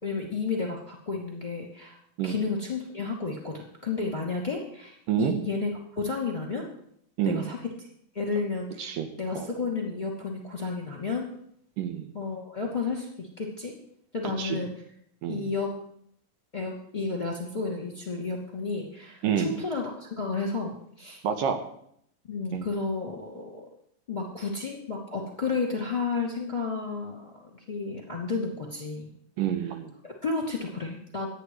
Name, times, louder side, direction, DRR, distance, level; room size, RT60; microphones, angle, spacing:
voice 1, 0.0-2.0 2.2-6.7 7.3-7.9 8.1-11.3 12.1-13.8 14.1-14.7 15.3-15.7 16.5-21.2 22.3-23.7 24.1-29.1 30.0-31.3, left 4 dB, 15° left, -1 dB, 2.0 m, -32 dB
voice 2, 11.8-12.1 14.4-14.6 15.2-15.5 19.2-19.5 21.2-21.6 22.5-22.7 29.4-29.9, right 9 dB, 75° right, 6 dB, 2.6 m, -28 dB
26.5 x 9.8 x 3.1 m, 0.68 s
omnidirectional pair, 4.1 m